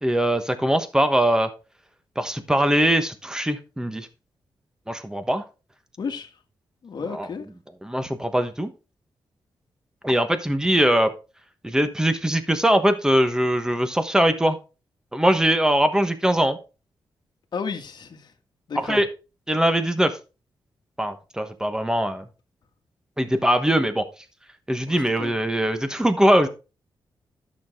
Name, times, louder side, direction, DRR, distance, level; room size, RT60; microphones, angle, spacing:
voice 1, 0.0-1.5 2.2-4.1 4.9-5.4 7.1-7.3 7.8-8.7 10.0-11.1 11.6-14.6 15.1-16.6 18.9-19.1 19.5-20.2 21.0-22.2 23.2-24.0 24.7-26.5, right 1 dB, 10° right, 1.1 m, -21 dB
voice 2, 6.0-6.4 6.8-7.5 17.5-18.3 18.7-19.0 24.9-25.3, left 5 dB, 60° left, 1.6 m, -33 dB
11.5 x 6.2 x 3.7 m
wide cardioid pair, 110°, 8 cm